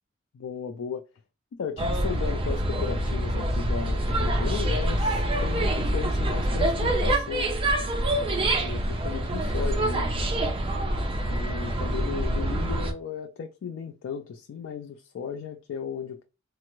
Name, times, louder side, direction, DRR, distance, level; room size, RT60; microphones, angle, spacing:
voice 1, 0.3-1.0 1.5-7.5 8.5-10.1 11.2-16.2, left 6 dB, 70° left, 0.3 m, -35 dB
sound 1, 1.8-12.9, right 1 dB, 25° right, 0.5 m, -26 dB
3.3 x 2.0 x 2.9 m
head